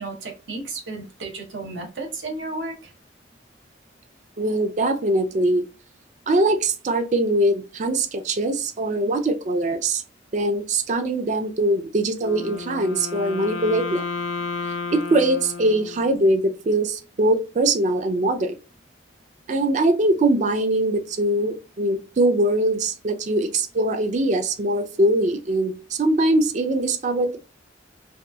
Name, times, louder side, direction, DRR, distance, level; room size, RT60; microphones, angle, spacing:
voice 1, 0.0-2.9, right 2 dB, 80° right, 0.8 m, -33 dB
voice 2, 4.4-5.6 6.3-10.0 10.3-14.0 14.9-18.6 19.5-27.4, right 1 dB, 40° right, 0.3 m, -22 dB
Wind instrument woodwind instrument, 12.2-16.4, left 4 dB, 90° left, 0.4 m, -32 dB
2.8 x 2.3 x 2.2 m
head